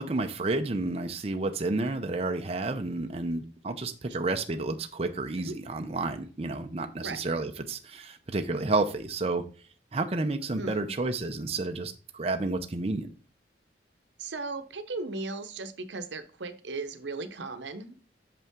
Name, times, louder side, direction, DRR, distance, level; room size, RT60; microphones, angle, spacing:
voice 1, 0.0-9.4 9.9-13.1, right 2 dB, 35° right, 6 dB, 0.6 m, -30 dB
voice 2, 10.6-10.9 14.2-18.0, right 3 dB, 85° right, 10 dB, 0.8 m, -37 dB
6.9 x 5.5 x 3.6 m, 0.38 s
head